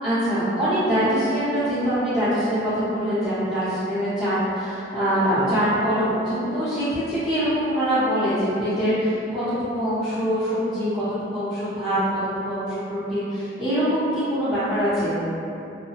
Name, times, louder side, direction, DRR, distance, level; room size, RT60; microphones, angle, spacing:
voice 1, 0.0-9.4 9.7-11.0 11.3-15.2, equal, 5° right, -20 dB, 0.8 m, -24 dB
2.7 x 2.2 x 2.9 m, 2.9 s
head